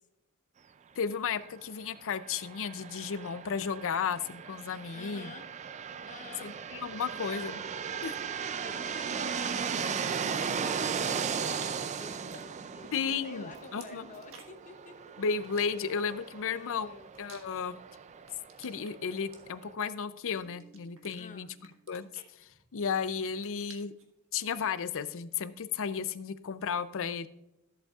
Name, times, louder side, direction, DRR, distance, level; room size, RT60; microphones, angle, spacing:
voice 1, 1.0-5.3 6.4-7.6 8.0-8.1 12.9-14.0 15.2-17.8 18.6-21.5 21.9-22.1 22.4-23.9 24.3-27.3, left 6 dB, 60° left, 13 dB, 0.5 m, -34 dB
sound 1, 2.1-19.7, right 6 dB, 30° right, 0.3 m, -37 dB
voice 2, 4.9-5.5 6.0-6.6 7.1-7.4 8.6-15.0 16.4-17.1 21.2-21.5, left 3 dB, 35° left, 7 dB, 0.9 m, -50 dB
sound 2, 10.0-10.5 11.4-13.1 13.3-14.7 15.4-16.2 16.8-17.9 18.2-19.9 20.4-21.2 21.6-22.9 23.2-24.1, right 5 dB, 65° right, 1.5 m, -55 dB
sound 3, 20.4-22.0, right 2 dB, 10° right, 2.4 m, -57 dB
14.0 x 7.9 x 2.4 m, 0.85 s
head